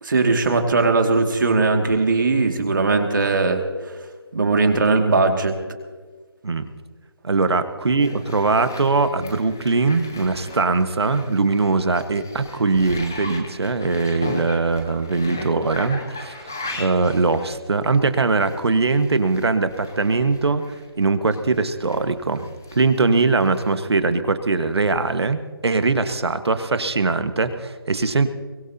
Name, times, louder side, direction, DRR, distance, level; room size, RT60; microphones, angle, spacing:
voice 1, 0.0-3.9 4.3-5.5, right 3 dB, 50° right, 4 dB, 2.3 m, -19 dB
voice 2, 7.2-20.6 21.0-28.3, right 3 dB, 90° right, 9 dB, 1.5 m, -21 dB
sound 1, 8.0-20.9 21.3-23.7, left 2 dB, 5° left, 0.4 m, -37 dB
22.5 x 21.0 x 2.9 m, 1.4 s
hypercardioid pair, 180°, 13 cm